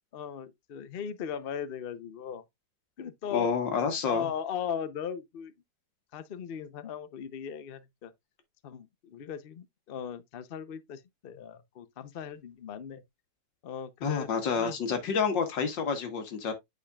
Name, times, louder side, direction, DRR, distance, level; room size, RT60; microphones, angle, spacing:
voice 1, 0.0-2.4 3.0-3.5 4.1-5.5 6.1-8.1 8.6-13.0 13.6-14.3 14.5-14.8, left 8 dB, 60° left, 0.6 m, -38 dB
voice 2, 3.3-4.3 14.0-16.5, left 6 dB, 90° left, 2.1 m, -29 dB
8.7 x 5.1 x 2.3 m
omnidirectional pair, 1.9 m